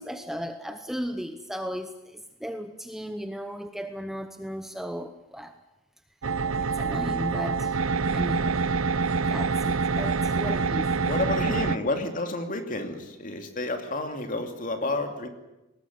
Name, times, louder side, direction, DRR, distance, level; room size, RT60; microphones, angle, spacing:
voice 1, 0.0-5.5 6.8-7.7 8.1-8.5 9.3-10.9, equal, ahead, 8 dB, 0.9 m, -35 dB
sound 1, 6.2-11.8, right 4 dB, 65° right, 0.8 m, -26 dB
voice 2, 11.1-15.3, left 2 dB, 40° left, 6 dB, 2.7 m, -30 dB
20.5 x 18.5 x 9.7 m, 0.98 s
head